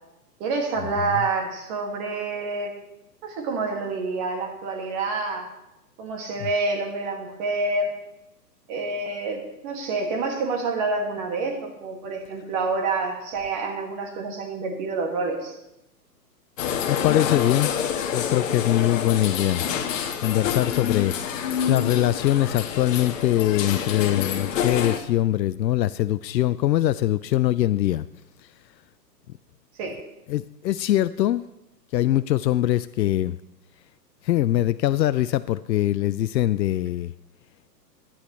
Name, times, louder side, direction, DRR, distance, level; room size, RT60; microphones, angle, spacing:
voice 1, 0.4-2.7 3.2-5.5 6.0-7.9 8.7-15.6 29.8-30.0, right 3 dB, 30° right, 2 dB, 2.0 m, -28 dB
sound 1, 16.6-25.0, left 8 dB, 50° left, 1.4 m, -27 dB
voice 2, 16.9-17.7 18.1-19.7 20.2-28.1 30.3-31.4 31.9-33.4 34.2-37.1, left 13 dB, 90° left, 15 dB, 0.5 m, -22 dB
17.0 x 10.5 x 3.1 m, 0.90 s
hypercardioid pair, 150°, 50 cm